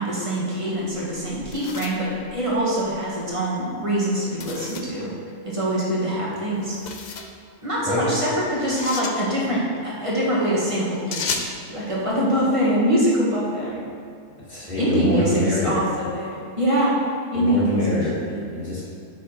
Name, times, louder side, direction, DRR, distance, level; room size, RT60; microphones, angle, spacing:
voice 1, 0.0-5.1 5.5-6.8 7.6-13.8 14.8-17.0 17.3-17.8 18.3-18.4, equal, 25° right, -6 dB, 1.6 m, -24 dB
sound 1, 1.1-3.0 4.4-5.0 6.6-7.3 8.6-9.2 11.1-11.6, left 5 dB, 80° left, 0.4 m, -33 dB
voice 2, 14.5-15.8 17.3-18.2 18.5-18.9, left 1 dB, 30° left, -8 dB, 1.9 m, -24 dB
6.3 x 5.9 x 4.5 m, 2.4 s
omnidirectional pair, 1.5 m